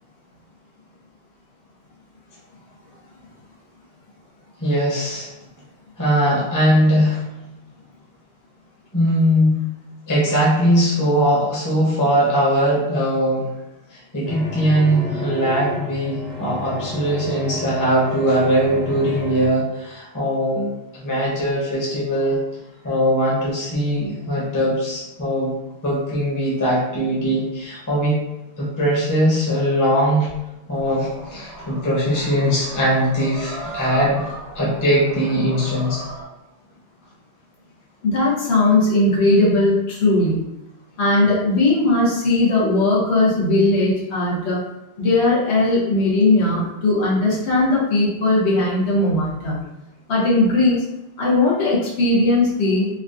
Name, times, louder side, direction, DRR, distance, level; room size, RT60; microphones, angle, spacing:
voice 1, 4.6-5.3 6.0-7.2 8.9-9.6 10.1-13.5 13.9-20.7 21.0-22.4 22.8-25.5 25.8-28.2 28.6-30.3 30.7-34.2 34.5-36.0, equal, 20° left, -6 dB, 0.7 m, -20 dB
sound 1, 14.2-19.5, equal, 25° right, 0.7 m, -32 dB
sound 2, 30.7-36.2, right 1 dB, 85° right, 1.2 m, -36 dB
voice 2, 38.0-40.4 41.0-44.6 45.0-49.6 50.1-50.8 51.2-52.9, left 2 dB, 85° left, -6 dB, 1.2 m, -18 dB
3.5 x 2.3 x 2.5 m, 0.94 s
omnidirectional pair, 1.1 m